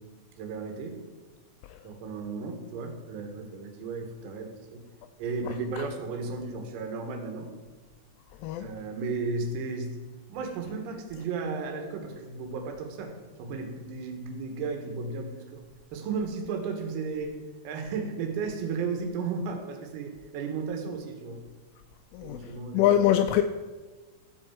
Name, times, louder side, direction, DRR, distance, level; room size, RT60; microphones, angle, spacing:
voice 1, 0.4-1.0 1.8-4.8 5.2-7.5 8.6-10.0 10.3-13.1 13.4-15.6 15.9-17.4 17.6-21.4 22.2-22.9, right 4 dB, 85° right, 4 dB, 4.2 m, -34 dB
voice 2, 22.7-23.4, left 11 dB, 85° left, 8 dB, 2.8 m, -22 dB
14.5 x 5.5 x 7.4 m, 1.3 s
omnidirectional pair, 6.0 m